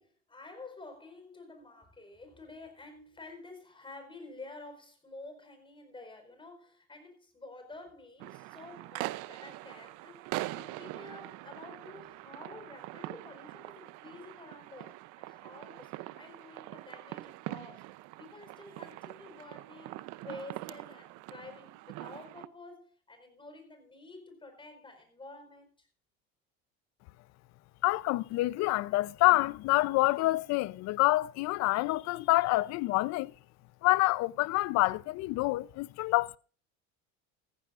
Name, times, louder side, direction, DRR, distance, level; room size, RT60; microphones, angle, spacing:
voice 1, 0.0-10.3 10.6-17.9 18.2-25.9, left 2 dB, 15° left, 4.8 m, -50 dB
sound 1, 8.2-22.5, right 19 dB, 65° right, 0.8 m, -43 dB
voice 2, 27.8-33.3 33.8-36.4, left 19 dB, 55° left, 0.7 m, -27 dB
15.5 x 15.0 x 2.5 m
supercardioid pair, 115°, 32 cm